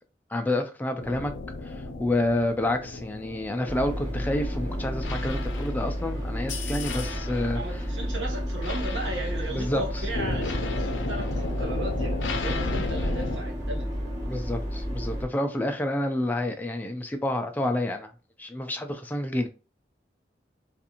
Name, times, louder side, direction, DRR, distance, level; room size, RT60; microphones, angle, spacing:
voice 1, 0.3-1.3 1.7-7.8 9.5-9.8 14.2-18.1 18.4-19.5, left 1 dB, 10° left, 0.3 m, -29 dB
sound 1, 1.0-13.4, left 3 dB, 90° left, 0.5 m, -35 dB
sound 2, 3.6-15.2, equal, 20° right, 0.9 m, -31 dB
voice 2, 7.5-14.1, right 2 dB, 85° right, 0.9 m, -36 dB
2.5 x 2.4 x 2.8 m
head